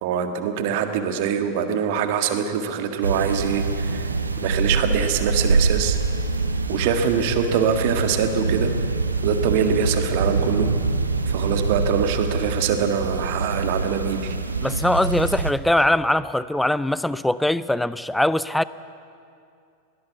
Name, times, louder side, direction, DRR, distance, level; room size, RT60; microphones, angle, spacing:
voice 1, 0.0-4.1 4.4-6.0 6.7-8.7 9.2-10.7 11.3-14.4, right 7 dB, 50° right, 7 dB, 1.8 m, -24 dB
sound 1, 3.0-15.5, right 3 dB, 80° right, 1.2 m, -25 dB
voice 2, 14.6-18.6, left 1 dB, 5° left, 17 dB, 0.5 m, -21 dB
22.0 x 17.5 x 8.2 m, 2.5 s
figure-of-eight pair, 90°, 0 cm